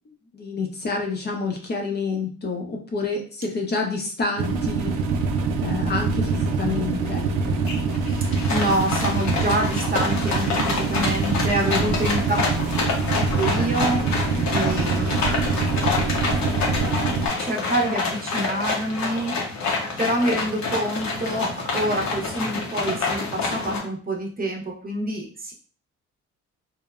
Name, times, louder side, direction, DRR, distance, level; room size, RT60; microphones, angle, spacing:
voice 1, 0.3-4.9 5.6-7.6 11.6-12.1, left 4 dB, 35° left, 1 dB, 0.6 m, -28 dB
sound 1, 4.4-17.3, right 4 dB, 85° right, 0.5 m, -24 dB
sound 2, 6.4-6.5 6.9-7.3 7.7-23.8, left 4 dB, 65° left, 0.8 m, -27 dB
voice 2, 8.1-12.4 13.3-15.1 15.6-16.6 17.4-19.4 19.6-19.7 20.0-25.5, right 1 dB, 30° right, 0 dB, 0.7 m, -27 dB
2.9 x 2.1 x 2.3 m, 0.40 s
cardioid pair, 90°, 30 cm